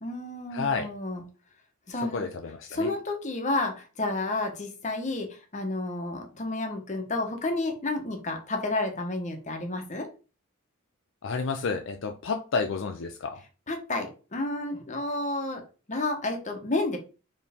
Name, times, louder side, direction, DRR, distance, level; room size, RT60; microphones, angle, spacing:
voice 1, 0.0-1.2 1.9-2.2 2.7-5.3 5.5-10.1 13.7-15.6 15.9-17.0, left 2 dB, 35° left, 1.0 m, -30 dB
voice 2, 0.5-0.9 2.0-2.9 11.2-13.4, left 4 dB, 60° left, 0.5 m, -30 dB
4.6 x 3.2 x 3.5 m
head